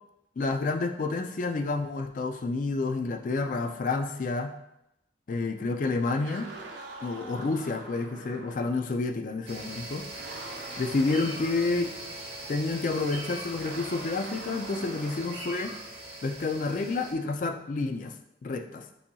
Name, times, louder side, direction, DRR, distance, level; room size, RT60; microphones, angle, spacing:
voice 1, 0.4-4.5 5.3-6.5 7.0-10.1 10.8-12.0 12.5-15.8 16.2-18.1 18.4-18.8, left 3 dB, 45° left, 5 dB, 0.3 m, -29 dB
sound 1, 6.0-8.7 10.1-11.6 13.6-15.5, right 2 dB, 75° right, 0.7 m, -44 dB
sound 2, 9.5-17.1, right 1 dB, 30° right, 1.0 m, -41 dB
8.3 x 2.8 x 2.3 m, 0.85 s
head